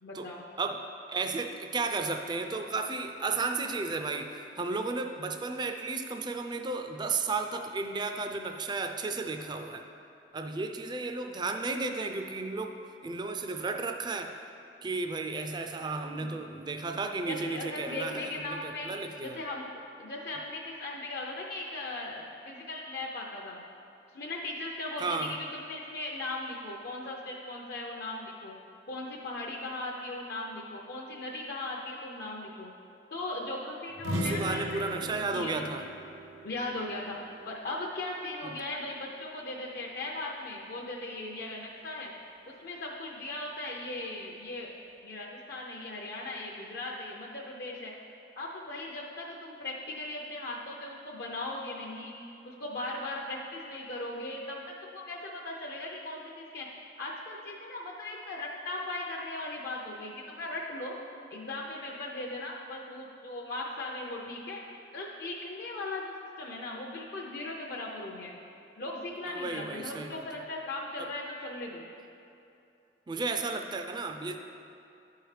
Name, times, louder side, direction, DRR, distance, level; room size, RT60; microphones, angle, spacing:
voice 1, 0.0-0.4 15.9-16.3 17.2-18.9 19.2-23.6 24.1-28.6 28.9-32.7 33.1-35.1 35.3-35.6 36.4-37.2 37.4-42.1 42.5-44.7 45.0-47.9 48.4-52.1 52.4-56.7 57.0-61.0 61.3-64.6 64.9-68.4 68.8-71.8, left 2 dB, 60° left, -2 dB, 0.6 m, -38 dB
voice 2, 0.6-9.8 10.3-14.4 14.8-19.4 25.0-25.4 34.1-35.9 38.4-38.6 68.8-69.0 69.2-70.4 71.0-71.1 73.1-74.4, right 3 dB, 25° right, 5 dB, 0.3 m, -34 dB
sound 1, 34.0-37.7, equal, 85° right, 0.7 m, -37 dB
10.5 x 4.6 x 3.2 m, 2.7 s
head